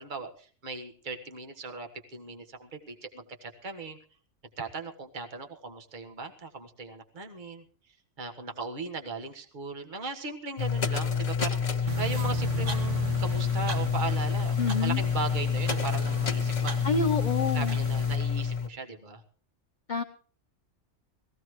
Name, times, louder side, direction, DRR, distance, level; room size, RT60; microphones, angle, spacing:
voice 1, 0.0-4.0 4.6-7.6 8.2-16.8 17.5-19.2, right 4 dB, 40° right, 4 dB, 1.6 m, -38 dB
sound 1, 10.6-18.7, left 6 dB, 75° left, 1.7 m, -28 dB
sound 2, 11.9-18.2, right 4 dB, 70° right, 2.1 m, -38 dB
voice 2, 14.6-15.0 16.8-17.8 19.9-20.0, left 4 dB, 45° left, 4 dB, 0.8 m, -28 dB
20.0 x 16.0 x 3.1 m, 0.43 s
omnidirectional pair, 1.3 m